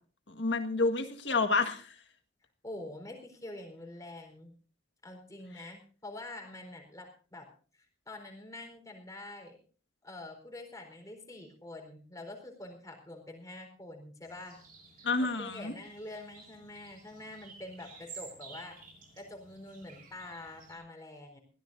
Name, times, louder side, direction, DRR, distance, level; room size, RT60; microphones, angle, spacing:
voice 1, 0.3-1.9 15.0-15.7, left 3 dB, 65° left, 7 dB, 1.8 m, -29 dB
voice 2, 2.6-4.5 5.0-7.5 7.7-9.6 10.0-14.6 15.2-18.8 19.1-21.4, left 2 dB, 20° left, 2 dB, 4.2 m, -46 dB
sound 1, 14.2-20.8, right 5 dB, 50° right, 6.5 m, -53 dB
21.5 x 17.0 x 2.7 m, 0.39 s
head